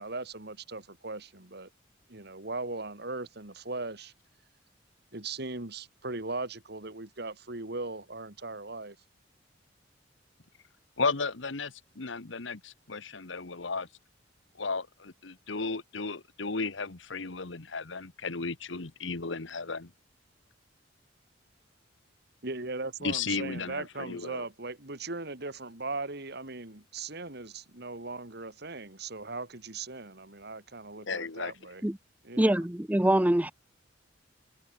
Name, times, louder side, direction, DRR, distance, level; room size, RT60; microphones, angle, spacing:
voice 1, 0.0-1.7 2.1-4.1 5.1-9.0 22.4-31.8 32.2-32.6, right 3 dB, 60° right, 2.8 m, -39 dB
voice 2, 11.0-13.9 14.6-19.9 23.0-24.4 31.0-31.5, left 4 dB, 75° left, 1.4 m, -34 dB
voice 3, 32.4-33.5, right 1 dB, 10° right, 0.6 m, -24 dB
head